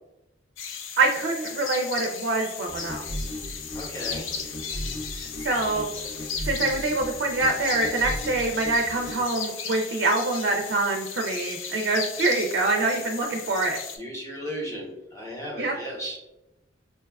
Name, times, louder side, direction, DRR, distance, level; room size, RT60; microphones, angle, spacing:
sound 1, 0.6-14.0, left 6 dB, 80° left, 0.4 m, -36 dB
voice 1, 1.0-3.0 5.4-5.9 6.4-13.8 15.6-15.7, right 3 dB, 55° right, 2 dB, 0.4 m, -25 dB
sound 2, 2.7-9.2, equal, 50° left, 0.8 m, -37 dB
voice 2, 3.7-4.2 14.0-16.2, equal, 15° left, -3 dB, 0.8 m, -35 dB
4.4 x 2.2 x 2.2 m, 0.93 s
head